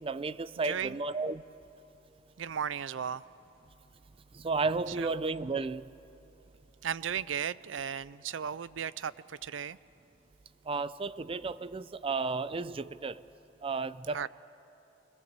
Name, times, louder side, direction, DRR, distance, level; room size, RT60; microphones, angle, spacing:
voice 1, 0.0-1.4 4.3-5.8 10.7-13.2 13.6-14.3, right 4 dB, 30° right, 16 dB, 0.4 m, -33 dB
voice 2, 0.6-1.0 2.4-3.2 5.0-5.1 6.8-9.8 14.1-14.3, right 8 dB, 85° right, 18 dB, 0.5 m, -35 dB
22.0 x 21.5 x 7.5 m, 2.9 s
head